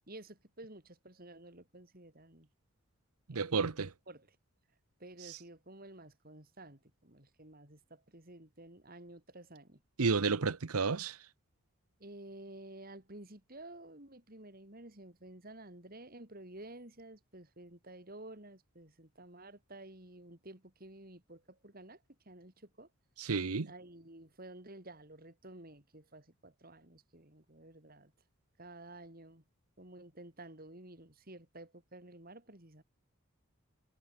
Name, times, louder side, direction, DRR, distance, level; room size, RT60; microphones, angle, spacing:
voice 1, 0.1-2.5 3.3-3.7 4.1-4.4 5.0-9.8 12.0-22.9 23.6-28.1 28.6-29.4 29.8-32.8, right 1 dB, 40° right, 4.0 m, -52 dB
voice 2, 3.3-3.9 5.3-5.4 10.0-11.2 23.2-23.7, right 4 dB, 90° right, 0.9 m, -31 dB
head